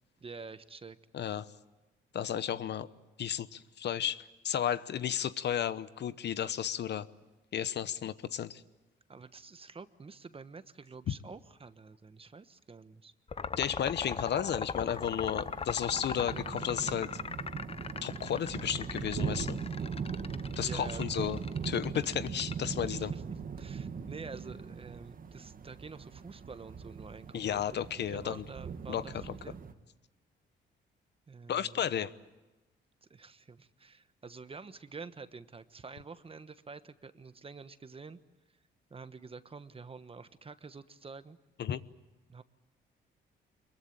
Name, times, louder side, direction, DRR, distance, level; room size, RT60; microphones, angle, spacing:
voice 1, 0.2-1.0 9.1-13.1 20.6-21.4 22.9-23.2 23.6-29.6 31.3-31.9 33.1-38.2 38.9-41.4 42.3-42.4, right 4 dB, 30° right, 12 dB, 1.2 m, -48 dB
voice 2, 1.1-1.5 2.1-2.9 3.2-7.1 7.5-8.6 13.6-17.1 18.0-19.6 20.6-21.4 21.6-23.1 27.3-28.4 28.9-29.3 31.5-32.1 41.6-41.8, left 9 dB, 60° left, 15 dB, 1.0 m, -33 dB
sound 1, 13.3-23.0, left 5 dB, 30° left, 0.8 m, -39 dB
sound 2, 13.8-29.7, right 6 dB, 45° right, 1.8 m, -40 dB
24.0 x 22.5 x 8.9 m, 1.1 s
cardioid pair, 90°, 20 cm